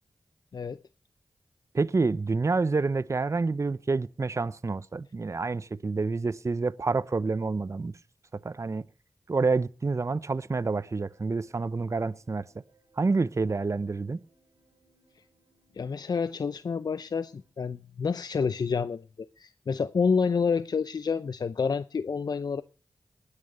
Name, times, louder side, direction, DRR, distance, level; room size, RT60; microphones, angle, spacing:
voice 1, 1.7-7.9 8.3-8.8 9.3-12.5 13.0-14.2, right 3 dB, 45° right, 0.6 m, -28 dB
sound 1, 10.5-17.5, right 3 dB, 85° right, 3.7 m, -67 dB
voice 2, 15.7-19.1 19.4-22.6, left 5 dB, 70° left, 0.6 m, -28 dB
19.5 x 6.5 x 6.7 m
cardioid pair, 40°, 7 cm